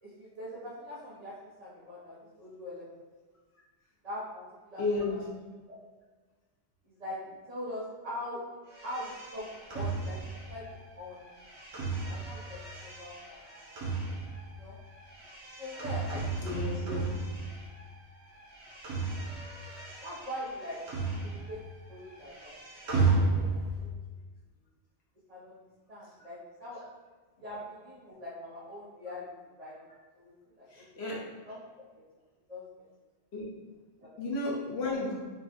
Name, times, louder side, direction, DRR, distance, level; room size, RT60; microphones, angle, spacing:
voice 1, 0.0-2.9 4.0-4.8 5.1-5.2 5.7-5.8 6.9-8.4 8.8-9.5 9.7-11.2 11.7-13.8 14.5-14.8 15.6-16.4 20.0-20.8 21.2-21.6 21.9-22.5 22.8-24.0 25.3-25.6 25.9-26.8 27.4-29.3 29.6-31.2 31.4-31.6 32.5-32.8 34.0-34.1, left 1 dB, 40° right, -8 dB, 0.8 m, -43 dB
voice 2, 4.8-5.2 16.4-17.0 30.7-31.2 33.3-33.4 34.2-35.1, left 2 dB, 70° left, -4 dB, 1.2 m, -32 dB
sound 1, 8.7-18.0 18.2-21.7 21.9-23.9, right 3 dB, 80° right, 1.2 m, -34 dB
5.5 x 2.2 x 2.9 m, 1.3 s
omnidirectional pair, 1.1 m